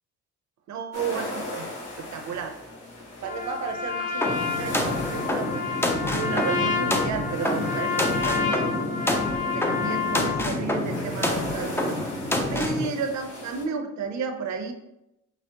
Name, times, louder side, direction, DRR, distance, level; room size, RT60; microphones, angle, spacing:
voice 1, 0.7-1.7 2.0-2.6 3.2-8.9 9.5-11.9 12.5-14.7, right 5 dB, 65° right, 6 dB, 0.6 m, -33 dB
sound 1, 0.9-13.6, left 1 dB, 55° left, 1.3 m, -39 dB
Trumpet, 3.2-10.5, left 5 dB, 25° left, 0.8 m, -29 dB
sound 2, 4.2-12.9, left 1 dB, 10° left, 0.4 m, -27 dB
5.9 x 2.0 x 2.8 m, 0.86 s
cardioid pair, 90°, 30 cm